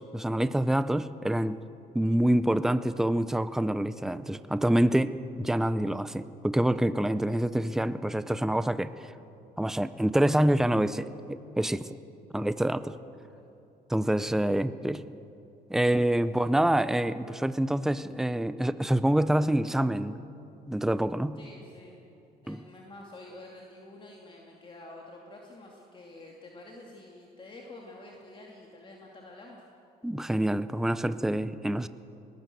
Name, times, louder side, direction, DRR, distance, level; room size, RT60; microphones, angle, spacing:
voice 1, 0.0-1.6 1.9-8.9 9.6-12.0 12.3-13.0 13.9-15.0 15.7-20.2 20.7-21.4 22.5-22.6 30.0-31.9, right 1 dB, 5° right, 14 dB, 0.6 m, -26 dB
voice 2, 21.4-22.0 22.4-29.6, left 2 dB, 30° left, -1 dB, 2.4 m, -48 dB
20.5 x 18.5 x 7.7 m, 2.8 s
cardioid pair, 110°, 17 cm